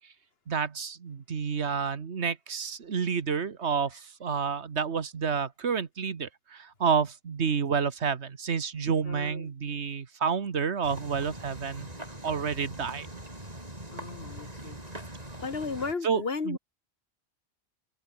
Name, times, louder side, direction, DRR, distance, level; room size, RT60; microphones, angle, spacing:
voice 1, 0.5-11.9 12.2-13.2 16.0-16.2 16.5-16.6, right 6 dB, 75° right, 1.6 m, -29 dB
voice 2, 9.0-9.5 13.9-14.8 15.4-16.6, left 4 dB, 60° left, 2.0 m, -35 dB
sound 1, 10.8-15.9, right 1 dB, 35° right, 5.9 m, -42 dB
omnidirectional pair, 1.1 m